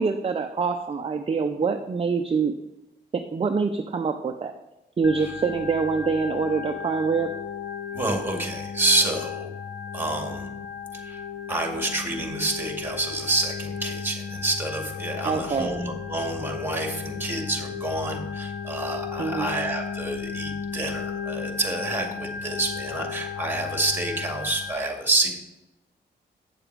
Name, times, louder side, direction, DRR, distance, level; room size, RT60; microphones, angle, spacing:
voice 1, 0.0-2.5 3.1-4.5 5.0-7.3 15.2-15.7 19.2-19.5, right 5 dB, 30° right, 5 dB, 0.6 m, -25 dB
Organ, 5.0-24.7, left 6 dB, 75° left, 0.8 m, -35 dB
voice 2, 7.9-9.5 9.9-10.5 10.9-11.2 11.5-25.3, right 2 dB, 10° right, 2 dB, 2.1 m, -28 dB
9.0 x 7.0 x 4.7 m, 0.94 s
cardioid pair, 100°, 18 cm